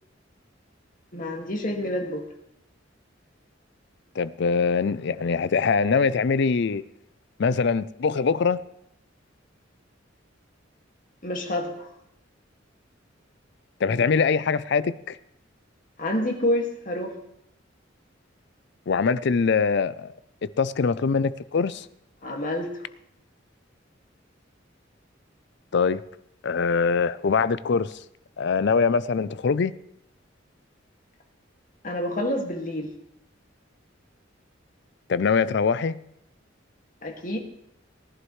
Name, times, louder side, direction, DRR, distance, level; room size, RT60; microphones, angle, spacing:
voice 1, 1.1-2.3 11.2-11.9 16.0-17.1 22.2-22.8 31.8-32.9 37.0-37.4, left 1 dB, 45° left, 2.0 m, -28 dB
voice 2, 4.2-6.8 7.4-8.6 13.8-15.2 18.9-20.1 20.4-21.9 25.7-26.0 26.4-28.0 28.4-29.7 35.1-36.0, left 5 dB, 65° left, 0.5 m, -23 dB
19.0 x 11.0 x 3.2 m
head